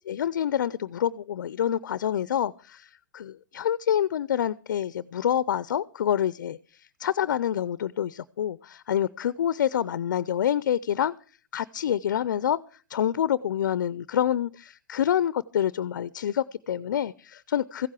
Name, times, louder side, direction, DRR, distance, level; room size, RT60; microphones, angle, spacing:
voice 1, 0.1-11.1 11.5-12.6 12.9-17.9, left 10 dB, 75° left, 18 dB, 0.5 m, -27 dB
15.0 x 7.4 x 7.6 m, 0.40 s
hypercardioid pair, 140°, 10 cm